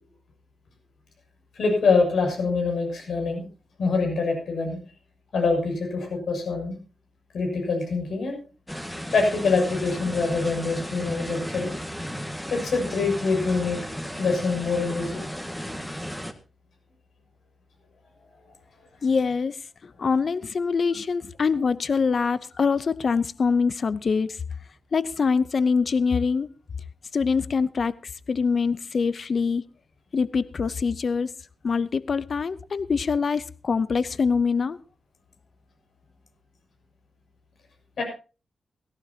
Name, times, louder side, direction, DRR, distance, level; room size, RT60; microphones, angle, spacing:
voice 1, 1.5-3.4 3.8-4.8 5.3-6.8 7.3-8.4 9.1-11.7 12.5-13.8 14.2-15.2 38.0-38.1, left 4 dB, 80° left, 7.0 m, -25 dB
sound 1, 8.7-16.3, equal, 5° left, 1.8 m, -34 dB
voice 2, 19.0-19.6 19.8-24.4 24.9-26.5 27.1-27.9 28.3-29.6 30.1-31.3 31.6-34.8, left 5 dB, 55° left, 0.7 m, -24 dB
18.0 x 16.0 x 2.8 m
cardioid pair, 95°, 0 cm